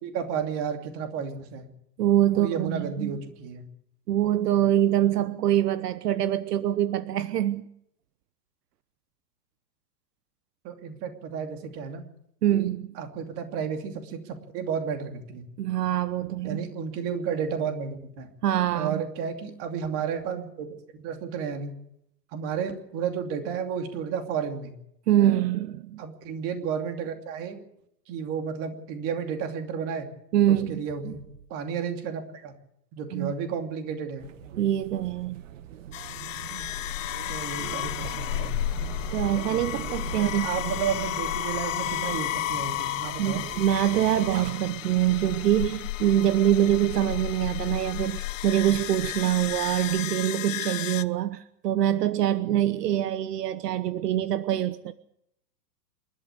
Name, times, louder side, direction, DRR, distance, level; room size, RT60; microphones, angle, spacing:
voice 1, 0.0-1.7 2.3-3.7 10.6-12.0 12.5-12.7 13.0-15.5 16.4-18.3 18.7-20.7 21.0-21.7 22.3-24.8 26.0-27.6 28.1-30.1 30.5-31.2 31.5-32.5 32.9-34.3 37.3-38.6 40.2-43.4, right 7 dB, 30° right, 2.7 m, -32 dB
voice 2, 2.0-3.1 4.1-7.7 12.4-13.0 15.6-16.6 18.4-19.0 25.1-26.0 30.3-30.8 33.1-33.3 34.6-35.4 39.1-40.5 43.2-54.9, right 12 dB, 70° right, 1.1 m, -24 dB
sound 1, 34.2-44.5, right 10 dB, 50° right, 1.4 m, -40 dB
sound 2, 35.9-51.0, left 15 dB, 50° left, 1.0 m, -33 dB
27.0 x 12.5 x 8.3 m
supercardioid pair, 160°, 49 cm